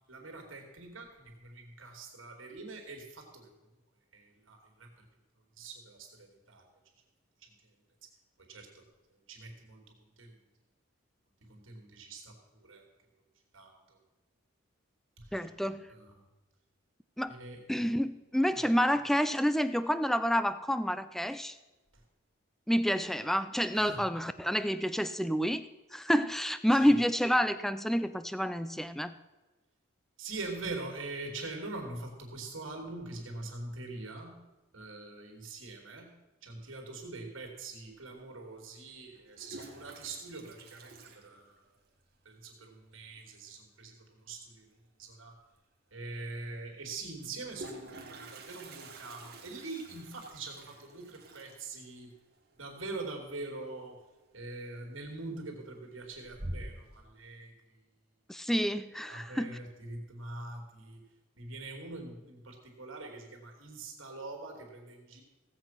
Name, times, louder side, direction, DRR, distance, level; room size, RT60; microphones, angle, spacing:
voice 1, 0.1-3.5 4.1-4.9 5.6-6.7 7.4-7.5 8.5-8.8 9.3-9.8 10.2-10.3 11.5-12.8 13.5-13.7 15.2-15.4 15.9-16.2 17.3-17.6 23.7-24.0 26.8-26.9 30.2-34.4 34.7-36.1 36.4-41.0 41.2-41.6 42.2-44.7 45.0-45.4 45.9-52.1 52.6-53.9 54.3-57.5 59.1-61.0 61.3-65.2, right 3 dB, 70° right, 2 dB, 3.0 m, -43 dB
voice 2, 15.3-15.9 17.2-17.3 17.7-21.6 22.7-29.2 58.3-59.6, equal, ahead, 13 dB, 0.4 m, -29 dB
Toilet flush, 37.9-38.0 39.1-42.0 42.2-42.3 42.6-42.7 43.0-43.4 45.1-45.2 45.5-45.6 47.2-53.9 54.2-54.6 55.0-55.6 56.0-57.0, right 1 dB, 50° right, 1.9 m, -47 dB
17.0 x 7.9 x 5.9 m, 1.1 s
head